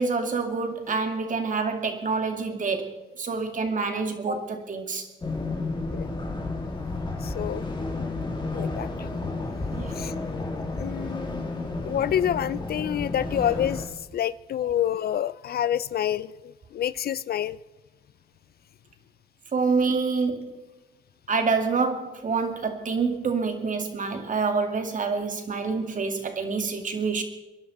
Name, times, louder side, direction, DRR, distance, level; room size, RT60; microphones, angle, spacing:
voice 1, 0.0-5.1 9.8-9.9 19.5-20.5 21.3-27.2, right 4 dB, 40° right, 2.4 m, -27 dB
sound 1, 5.2-13.9, left 3 dB, 20° left, 2.7 m, -32 dB
voice 2, 7.2-7.6 8.5-9.1 10.0-10.1 10.8-11.3 11.8-13.9 14.1-17.6, left 10 dB, 50° left, 0.4 m, -28 dB
24.5 x 11.0 x 4.2 m
cardioid pair, 90°, 20 cm